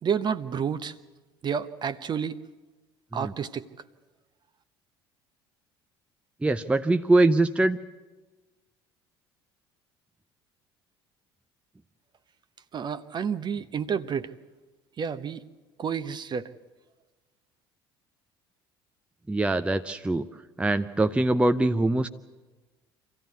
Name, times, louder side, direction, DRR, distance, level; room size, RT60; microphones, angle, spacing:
voice 1, 0.0-0.9 1.4-2.4 3.1-3.7 12.7-14.3 15.0-15.4 15.8-16.5, right 7 dB, 35° right, 13 dB, 0.9 m, -30 dB
voice 2, 6.4-7.8 19.3-20.3 20.6-22.1, right 2 dB, 10° right, 9 dB, 0.7 m, -23 dB
25.5 x 15.5 x 8.3 m, 1.2 s
figure-of-eight pair, 60°, 13 cm